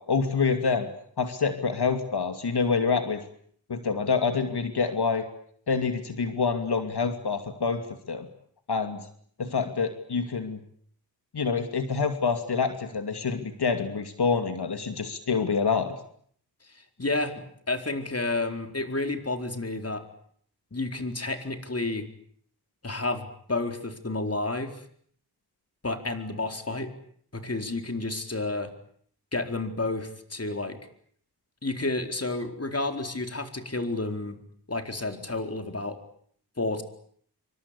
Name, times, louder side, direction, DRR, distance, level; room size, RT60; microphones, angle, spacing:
voice 1, 0.1-0.9 1.2-3.2 3.7-5.2 5.7-7.8 8.1-8.3 8.7-9.0 9.4-10.6 11.3-15.9, left 5 dB, 85° left, 7 dB, 2.8 m, -26 dB
voice 2, 16.7-20.0 20.7-22.1 22.8-24.8 25.8-26.9 27.3-28.7 29.3-30.8 31.6-34.4 34.7-36.0 36.6-36.8, left 2 dB, 40° left, 6 dB, 4.5 m, -30 dB
28.0 x 25.0 x 8.5 m, 0.63 s
wide cardioid pair, 75°, 38 cm